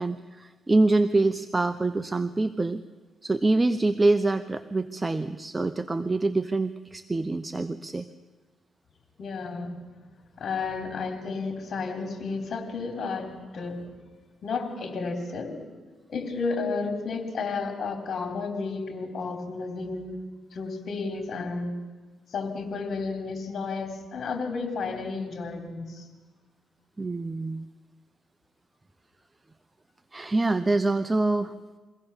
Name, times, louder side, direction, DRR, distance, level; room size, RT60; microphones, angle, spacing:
voice 1, 0.0-2.8 3.2-8.1 27.0-27.6 30.1-31.8, right 2 dB, 20° right, 11 dB, 0.7 m, -25 dB
voice 2, 9.2-9.8 10.4-13.9 14.4-15.6 16.1-20.1 20.5-21.8 22.3-26.1, left 4 dB, 60° left, 5 dB, 3.5 m, -32 dB
23.5 x 16.0 x 7.1 m, 1.3 s
cardioid pair, 85°, 0 cm